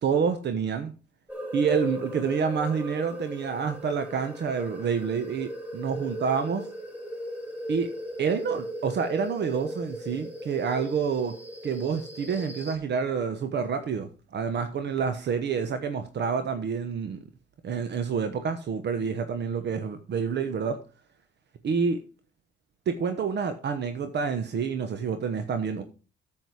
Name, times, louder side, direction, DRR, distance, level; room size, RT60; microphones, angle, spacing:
voice 1, 0.0-0.9 1.5-6.6 7.7-7.9 8.2-11.3 11.6-17.2 17.6-20.8 21.6-22.0 22.9-25.8, right 6 dB, 60° right, 1.1 m, -28 dB
sound 1, 1.3-12.8, equal, 10° right, 4.6 m, -37 dB
9.2 x 7.7 x 4.9 m
cardioid pair, 90°, 20 cm